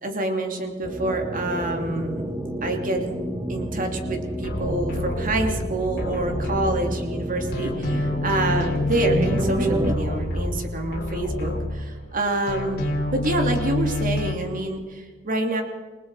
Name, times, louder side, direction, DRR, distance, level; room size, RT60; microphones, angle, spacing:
voice 1, 0.0-2.3 2.6-3.2 3.5-12.8 13.1-15.6, right 1 dB, 45° right, 3 dB, 2.9 m, -27 dB
sound 1, 0.8-9.9, right 1 dB, 20° right, 1.4 m, -30 dB
sound 2, 4.4-7.2 7.5-12.2 12.5-14.3, left 1 dB, 55° left, 3.7 m, -28 dB
28.5 x 19.0 x 4.9 m, 1.4 s
head